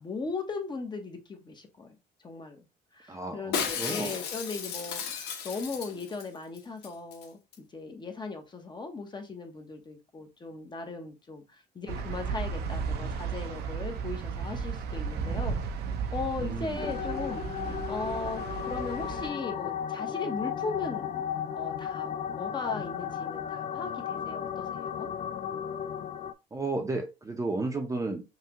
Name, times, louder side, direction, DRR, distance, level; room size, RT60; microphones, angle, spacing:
voice 1, 0.0-2.0 2.2-2.7 2.9-15.6 16.1-21.2 21.5-25.1, left 3 dB, 25° left, 1.0 m, -38 dB
voice 2, 3.1-4.2 16.4-16.9 26.5-28.2, right 3 dB, 20° right, 0.7 m, -33 dB
Shatter, 3.5-6.3 6.6-6.7 6.8-7.3 7.5-7.6, left 7 dB, 80° left, 1.0 m, -34 dB
sound 1, 11.9-19.3, right 5 dB, 75° right, 0.8 m, -34 dB
sound 2, 16.8-26.3, left 8 dB, 45° left, 0.4 m, -34 dB
5.7 x 2.3 x 3.0 m
cardioid pair, 110°, 17 cm